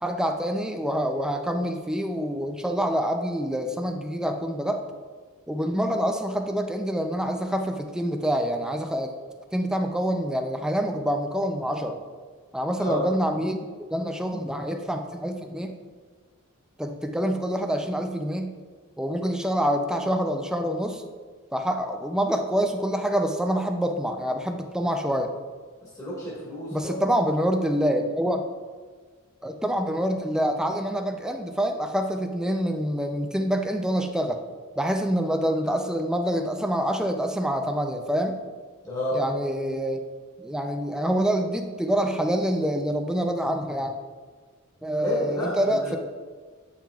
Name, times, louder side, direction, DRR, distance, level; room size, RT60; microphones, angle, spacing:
voice 1, 0.0-4.8 5.5-9.1 9.5-12.0 12.5-13.7 13.9-15.8 16.8-18.6 19.0-21.0 21.5-25.3 26.7-28.4 29.4-34.4 34.8-38.4 39.1-40.0 40.4-44.0 44.8-46.0, equal, 5° right, 4 dB, 0.4 m, -26 dB
voice 2, 25.8-27.0 38.8-39.2 44.9-46.0, left 1 dB, 15° left, -8 dB, 1.7 m, -30 dB
8.6 x 5.7 x 2.4 m, 1.5 s
head